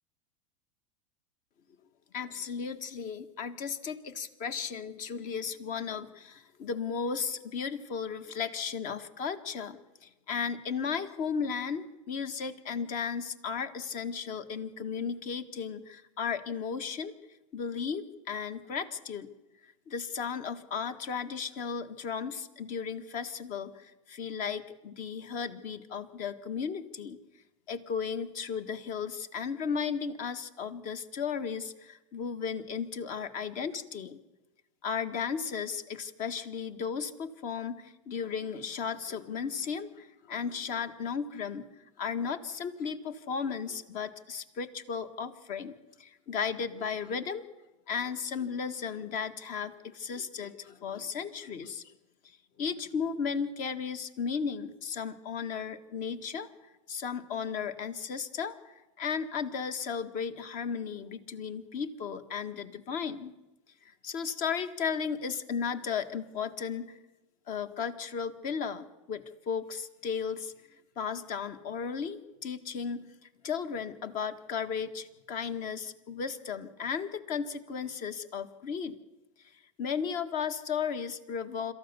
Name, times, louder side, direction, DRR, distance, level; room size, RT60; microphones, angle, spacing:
voice 1, 2.1-17.1 17.5-19.3 19.6-27.2 27.7-34.2 34.8-41.7 42.0-47.4 47.9-51.9 52.6-56.5 56.9-63.3 63.8-67.0 67.5-70.5 70.9-73.1 73.4-78.9 79.8-81.7, left 6 dB, 50° left, 9 dB, 1.7 m, -35 dB
26.5 x 14.0 x 7.0 m, 1.1 s
hypercardioid pair, 105°, 18 cm